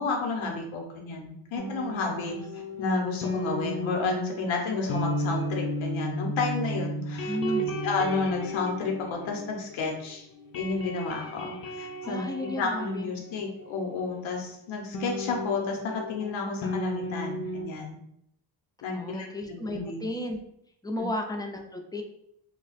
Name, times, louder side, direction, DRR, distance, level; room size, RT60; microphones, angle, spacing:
voice 1, 0.0-7.4 7.8-10.3 10.5-18.0 18.8-20.0 21.0-21.1, left 4 dB, 85° left, 0 dB, 0.8 m, -31 dB
sound 1, 1.6-10.0 10.3-13.8 14.9-17.6, equal, 50° left, 0.7 m, -34 dB
voice 2, 7.3-7.8 12.0-13.1 18.9-20.4 20.8-22.0, left 1 dB, 10° left, 3 dB, 0.4 m, -33 dB
2.4 x 2.2 x 3.9 m, 0.74 s
cardioid pair, 75°, 46 cm